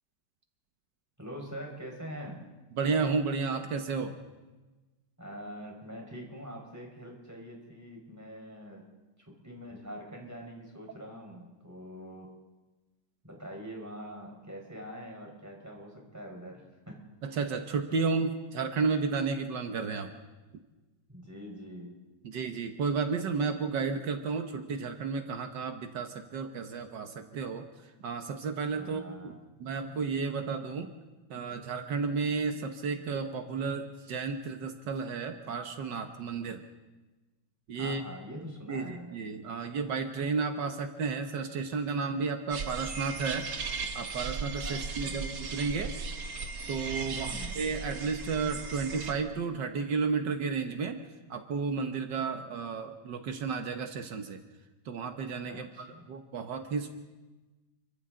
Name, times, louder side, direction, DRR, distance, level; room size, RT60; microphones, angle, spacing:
voice 1, 1.2-2.4 5.2-8.8 9.2-12.3 13.2-17.0 21.1-22.0 28.8-29.4 37.7-39.3 44.6-45.3 47.1-47.5 55.5-56.1, equal, 10° right, 0 dB, 4.8 m, -44 dB
voice 2, 2.8-4.2 17.2-20.1 22.2-27.6 28.0-30.9 31.3-36.6 37.7-38.0 38.7-43.5 43.9-45.9 46.7-51.0 51.3-54.4 54.9-56.9, right 5 dB, 80° right, 6 dB, 1.8 m, -32 dB
sound 1, 42.5-49.1, right 4 dB, 55° right, 1.8 m, -37 dB
29.5 x 24.0 x 3.8 m, 1.2 s
omnidirectional pair, 1.9 m